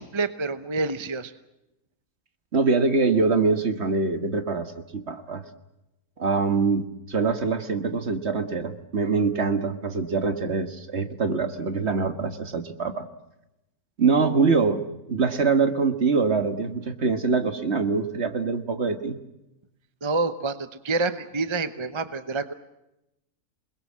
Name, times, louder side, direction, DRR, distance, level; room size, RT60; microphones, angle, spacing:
voice 1, 0.0-1.3 20.0-22.5, right 3 dB, 25° right, 11 dB, 0.8 m, -28 dB
voice 2, 2.5-5.4 6.2-13.1 14.0-14.8 15.1-19.2, right 4 dB, 45° right, 9 dB, 1.8 m, -24 dB
27.5 x 21.0 x 7.5 m, 0.91 s
omnidirectional pair, 1.6 m